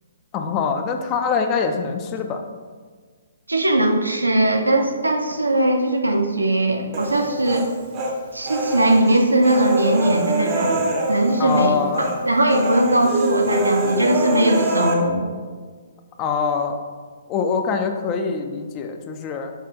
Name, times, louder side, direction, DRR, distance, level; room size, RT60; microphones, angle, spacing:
voice 1, 0.3-2.4 11.4-12.2 16.2-16.8 17.3-19.5, left 5 dB, 25° left, 5 dB, 0.3 m, -24 dB
voice 2, 3.5-7.7 8.3-15.3, right 1 dB, 80° right, 3 dB, 0.5 m, -20 dB
Human voice, 6.9-8.1 8.5-11.7 11.9-12.2 12.5-14.9, right 1 dB, 25° right, 0.5 m, -24 dB
5.4 x 2.4 x 3.4 m, 1.5 s
figure-of-eight pair, 125°, 0 cm